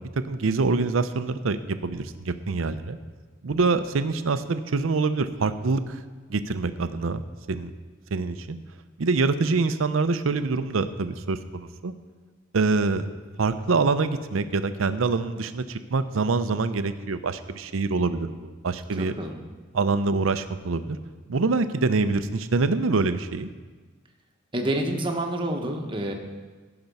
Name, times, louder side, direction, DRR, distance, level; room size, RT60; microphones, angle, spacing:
voice 1, 0.2-3.0 3.4-6.0 6.3-7.2 7.5-7.7 8.1-8.6 9.0-11.9 12.5-13.1 13.4-19.1 19.7-21.0 21.3-23.5, right 3 dB, 85° right, 11 dB, 0.6 m, -25 dB
voice 2, 18.9-19.4 24.5-26.1, right 1 dB, 25° right, 2 dB, 1.1 m, -28 dB
14.5 x 6.0 x 5.3 m, 1.4 s
head